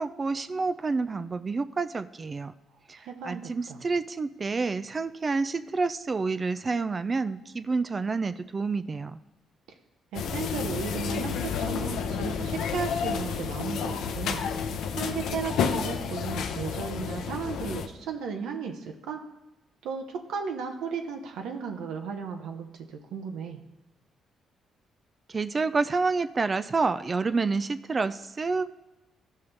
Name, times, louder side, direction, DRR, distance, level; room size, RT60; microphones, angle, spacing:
voice 1, 0.0-2.5 2.9-3.0 3.2-9.2 25.3-28.7, right 4 dB, 35° right, 12 dB, 0.3 m, -28 dB
voice 2, 3.0-3.9 10.1-19.2 19.8-23.6, right 6 dB, 85° right, 3 dB, 0.8 m, -35 dB
sound 1, 10.1-17.9, left 6 dB, 80° left, 0.6 m, -30 dB
13.5 x 5.5 x 3.3 m, 1.0 s
cardioid pair, 90°, 0 cm